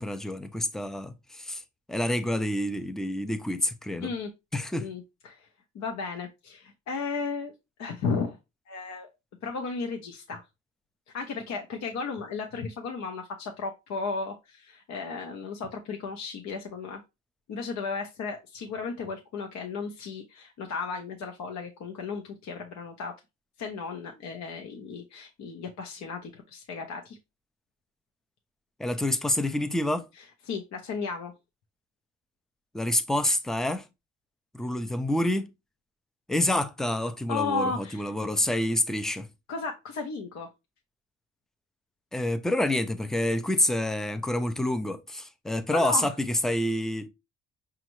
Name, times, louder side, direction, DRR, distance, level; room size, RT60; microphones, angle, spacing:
voice 1, 0.0-1.6 1.9-4.1 4.5-4.9 28.8-30.1 32.7-33.9 34.5-35.5 36.3-39.3 42.1-47.1, left 1 dB, ahead, 0.4 m, -28 dB
voice 2, 4.0-4.3 4.7-5.5 5.7-7.5 7.8-8.4 8.7-9.1 9.4-10.4 11.1-17.0 17.5-23.1 23.6-27.2 30.5-31.3 37.3-38.1 39.5-40.5 45.7-46.1, left 4 dB, 65° left, 0.8 m, -34 dB
5.1 x 2.4 x 3.0 m
cardioid pair, 90°, 30 cm